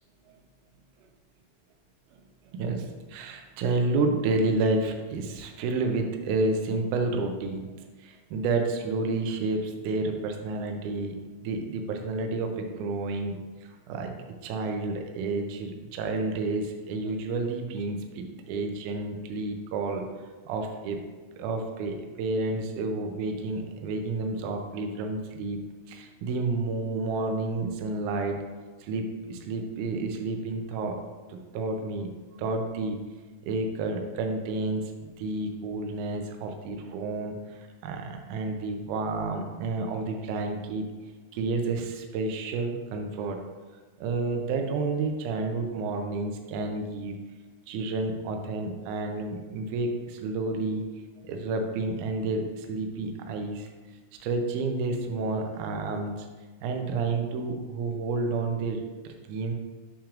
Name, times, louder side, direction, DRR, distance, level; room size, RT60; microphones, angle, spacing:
voice 1, 2.5-7.7 8.0-14.1 14.4-20.1 20.5-21.0 21.4-25.6 25.9-28.4 28.8-31.0 31.3-32.1 32.4-33.0 33.4-40.9 41.3-43.4 44.0-47.2 47.7-50.8 51.2-53.7 54.2-56.3 56.6-59.5, right 3 dB, 80° right, 4 dB, 1.8 m, -30 dB
6.8 x 5.8 x 2.5 m, 1.3 s
omnidirectional pair, 4.2 m